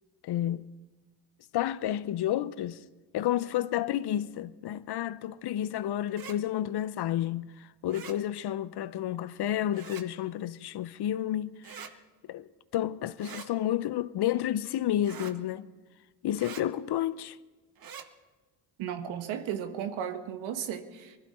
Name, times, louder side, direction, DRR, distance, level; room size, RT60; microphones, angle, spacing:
voice 1, 0.2-0.7 1.5-2.8 3.1-11.6 12.3-15.7 16.2-17.4, left 12 dB, 55° left, 0.7 m, -31 dB
sound 1, 6.1-6.4 7.9-8.2 9.7-10.1 11.6-11.9 13.2-13.5 15.0-15.4 16.4-16.6 17.8-18.1, right 7 dB, 50° right, 1.2 m, -44 dB
voice 2, 18.8-21.2, right 9 dB, 80° right, 1.5 m, -35 dB
20.5 x 14.5 x 4.3 m
supercardioid pair, 70°, 47 cm